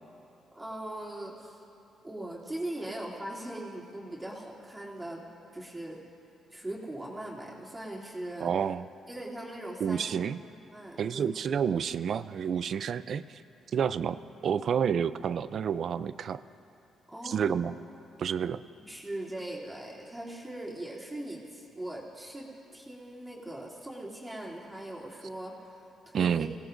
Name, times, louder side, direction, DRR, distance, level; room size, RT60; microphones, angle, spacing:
voice 1, 0.5-1.6 2.0-5.2 5.5-6.0 6.5-8.5 9.1-10.2 10.7-11.3 17.1-17.6 18.9-22.5 22.7-26.5, right 1 dB, 15° right, -5 dB, 2.9 m, -40 dB
voice 2, 8.4-8.9 9.8-10.4 11.0-13.4 13.7-16.4 17.2-17.7 18.2-18.6 26.1-26.5, right 7 dB, 60° right, 15 dB, 0.4 m, -29 dB
24.5 x 17.0 x 2.6 m, 2.8 s
cardioid pair, 90°, 0 cm